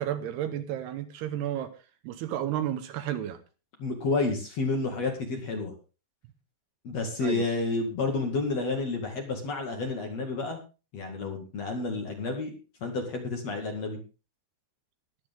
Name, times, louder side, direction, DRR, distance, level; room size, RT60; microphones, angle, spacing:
voice 1, 0.0-1.7 2.0-3.4 7.2-7.4, right 11 dB, 75° right, 10 dB, 2.9 m, -32 dB
voice 2, 3.8-5.7 6.8-10.6 10.9-12.5 12.8-14.0, left 3 dB, 45° left, 3 dB, 2.7 m, -30 dB
21.0 x 8.5 x 3.7 m, 0.32 s
omnidirectional pair, 5.0 m